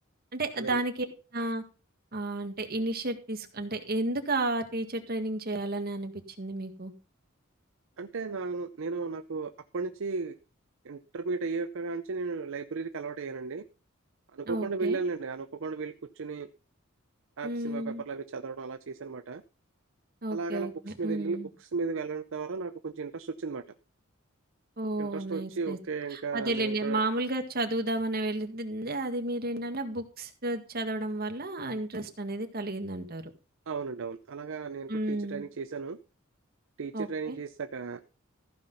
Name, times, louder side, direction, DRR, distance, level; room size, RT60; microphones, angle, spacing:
voice 1, 0.3-1.1 1.3-1.6 2.1-6.9 14.4-15.0 17.4-18.0 20.2-21.5 24.8-25.8 26.1-33.2 34.9-35.5 36.9-37.4, right 2 dB, 50° right, 6 dB, 1.9 m, -32 dB
voice 2, 8.0-10.4 10.8-13.6 14.3-16.5 17.4-19.4 20.3-20.7 21.0-23.6 25.0-27.0 33.7-36.0 36.8-38.0, right 4 dB, 65° right, 10 dB, 0.6 m, -35 dB
14.5 x 5.9 x 5.5 m, 0.34 s
head